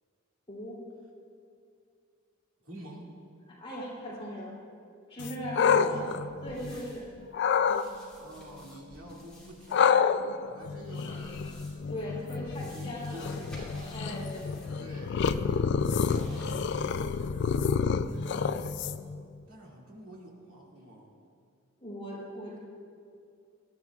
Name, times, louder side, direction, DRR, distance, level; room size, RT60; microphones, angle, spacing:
voice 1, 0.5-0.8 3.5-4.6 5.1-6.0 6.4-7.1 7.7-7.8 11.9-15.2 21.8-22.6, equal, 25° left, -6 dB, 2.9 m, -40 dB
voice 2, 2.6-3.1 5.7-6.1 8.2-9.9 10.4-11.7 12.1-14.0 14.8-15.2 16.0-17.1 17.8-18.6 19.5-21.1, equal, 85° right, -2 dB, 2.2 m, -48 dB
sound 1, 5.2-6.9 7.3-7.8 9.7-19.2, left 6 dB, 55° left, 0.3 m, -28 dB
sound 2, 6.5-7.1 7.5-9.8 10.9-11.9 12.4-14.8 15.1-15.2 15.9-17.0 17.4-17.5, left 1 dB, 5° left, 2.7 m, -51 dB
18.5 x 12.5 x 2.4 m, 2.4 s
head